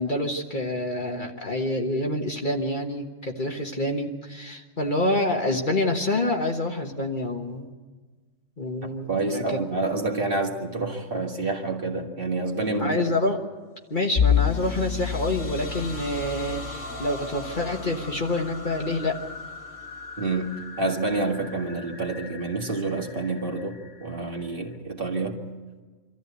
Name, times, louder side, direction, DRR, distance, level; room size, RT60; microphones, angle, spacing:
voice 1, 0.0-7.7 8.6-9.6 12.8-13.4 13.9-19.1, left 1 dB, 40° left, 3 dB, 1.4 m, -27 dB
voice 2, 8.8-13.1 20.2-25.4, right 3 dB, 45° right, 1 dB, 2.1 m, -28 dB
Bowed string instrument, 14.1-19.2, left 8 dB, 85° left, 2.6 m, -29 dB
sound 1, 14.1-24.7, left 3 dB, 65° left, 2.1 m, -41 dB
24.5 x 14.0 x 8.2 m, 1.4 s
omnidirectional pair, 1.4 m